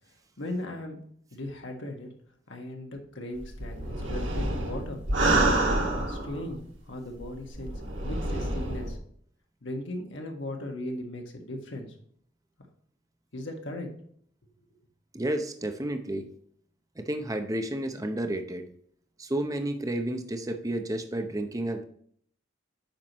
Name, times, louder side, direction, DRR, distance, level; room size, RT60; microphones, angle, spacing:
voice 1, 0.4-1.0 1.3-2.1 2.5-5.0 5.7-7.7 8.0-9.0 9.6-11.9 13.3-13.9, left 1 dB, 65° left, 2 dB, 1.6 m, -37 dB
sound 1, 3.4-6.6 7.2-9.0, right 2 dB, 65° right, 1.8 m, -28 dB
voice 2, 15.1-16.3 17.0-18.7 19.2-21.8, right 1 dB, 15° right, 6 dB, 0.7 m, -31 dB
8.7 x 5.9 x 3.0 m, 0.62 s
head